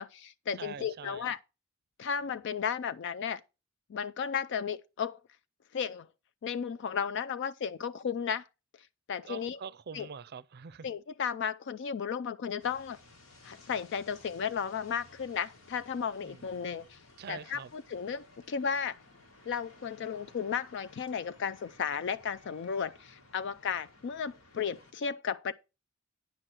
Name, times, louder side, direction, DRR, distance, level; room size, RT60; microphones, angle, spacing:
voice 1, 0.0-1.4 2.0-3.4 3.9-5.2 5.7-6.1 6.4-8.5 8.8-9.6 9.9-10.1 10.8-13.0 13.4-17.0 17.3-19.0 19.5-25.5, left 7 dB, 60° left, 0.4 m, -34 dB
voice 2, 0.6-1.2 9.3-10.9 16.2-16.4 17.2-17.7, right 6 dB, 50° right, 0.5 m, -44 dB
sound 1, 12.6-24.9, left 2 dB, 90° left, 2.1 m, -58 dB
9.7 x 6.2 x 4.4 m
head